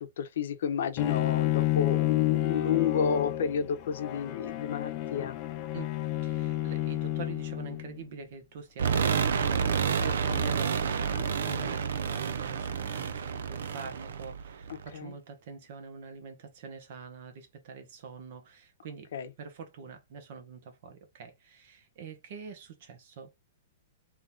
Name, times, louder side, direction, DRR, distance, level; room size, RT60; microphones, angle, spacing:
voice 1, 0.0-5.4 10.0-10.5 11.2-11.7 14.9-15.1 19.1-19.3, left 7 dB, 60° left, 0.8 m, -31 dB
Bowed string instrument, 1.0-8.0, left 15 dB, 25° left, 0.4 m, -30 dB
voice 2, 6.2-19.1 19.4-23.4, right 5 dB, 45° right, 1.1 m, -45 dB
sound 1, 8.8-14.9, right 7 dB, 75° right, 0.5 m, -29 dB
3.8 x 2.9 x 3.6 m
hypercardioid pair, 175°, 0 cm